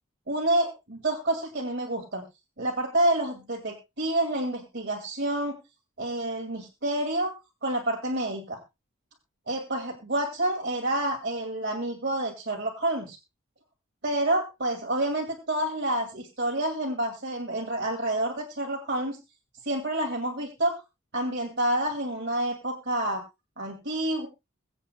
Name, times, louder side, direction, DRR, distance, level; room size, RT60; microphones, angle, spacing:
voice 1, 0.3-2.2 2.6-5.6 6.0-7.3 7.6-8.6 9.5-13.2 14.0-19.2 19.6-20.8 21.1-23.2 23.6-24.3, right 1 dB, 50° right, 2 dB, 2.1 m, -28 dB
23.0 x 8.1 x 2.2 m, 0.25 s
head